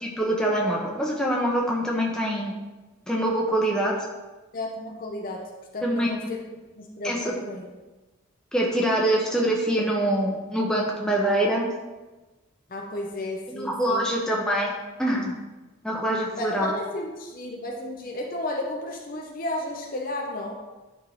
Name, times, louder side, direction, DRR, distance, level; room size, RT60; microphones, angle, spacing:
voice 1, 0.0-2.5 3.1-3.9 5.8-6.1 7.0-7.3 8.5-11.7 13.5-14.7 15.0-15.4 15.8-16.7, right 1 dB, 5° left, -3 dB, 1.0 m, -24 dB
voice 2, 4.5-5.4 5.7-6.4 6.7-7.7 12.7-14.0 16.4-20.6, left 1 dB, 40° left, 0 dB, 0.7 m, -33 dB
10.5 x 3.8 x 3.8 m, 1.2 s
head